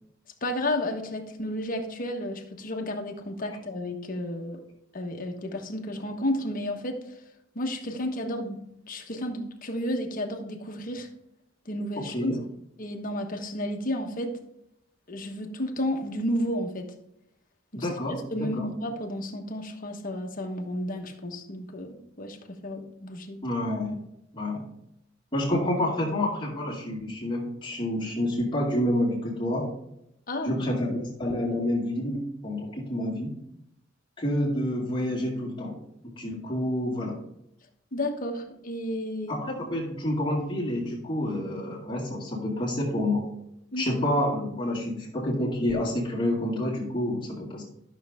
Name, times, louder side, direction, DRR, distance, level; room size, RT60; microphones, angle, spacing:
voice 1, 0.4-4.6 4.9-7.0 7.5-11.1 11.6-12.4 12.8-14.4 15.1-16.9 17.7-23.4 30.3-30.5 37.9-39.3 43.7-44.0, left 1 dB, 45° left, 4 dB, 1.3 m, -32 dB
voice 2, 17.7-18.7 23.4-24.1 24.3-24.7 25.3-29.7 30.4-33.3 34.2-35.8 36.0-37.2 39.3-43.3 43.8-47.6, left 1 dB, 25° left, -6 dB, 2.2 m, -28 dB
12.0 x 6.5 x 3.6 m, 0.78 s
head